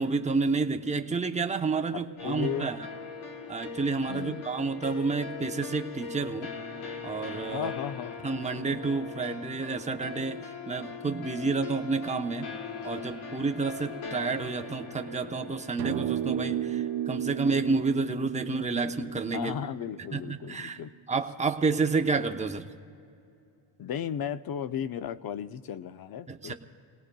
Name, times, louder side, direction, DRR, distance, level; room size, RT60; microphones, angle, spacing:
voice 1, 0.0-2.8 3.5-6.5 7.0-7.7 8.2-12.5 12.8-19.5 20.1-20.8 21.1-22.7 26.3-26.5, right 4 dB, 15° right, 5 dB, 0.8 m, -30 dB
voice 2, 1.9-2.7 4.1-4.5 7.5-8.2 19.3-20.9 23.8-26.5, left 9 dB, 50° left, 13 dB, 0.6 m, -35 dB
sound 1, 2.2-17.5, left 5 dB, 75° left, 1.4 m, -41 dB
sound 2, 15.8-20.3, right 11 dB, 80° right, 0.8 m, -33 dB
28.0 x 18.0 x 2.3 m, 2.6 s
cardioid pair, 85°, 49 cm